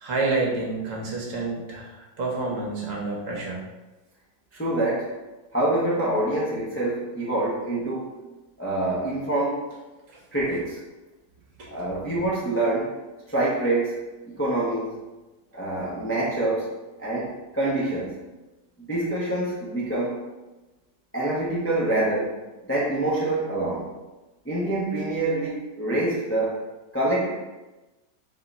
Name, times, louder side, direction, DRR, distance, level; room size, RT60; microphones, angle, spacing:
voice 1, 0.0-3.6 11.6-11.7, right 3 dB, 55° right, -1 dB, 1.3 m, -28 dB
voice 2, 4.5-5.2 5.5-8.1 8.6-9.7 10.3-10.8 11.7-13.0 13.3-14.9 15.5-16.7 17.0-18.2 18.8-20.2 21.1-23.9 24.4-26.6 26.9-27.3, right 2 dB, 15° left, -6 dB, 0.6 m, -26 dB
3.6 x 3.6 x 4.0 m, 1.1 s
omnidirectional pair, 1.7 m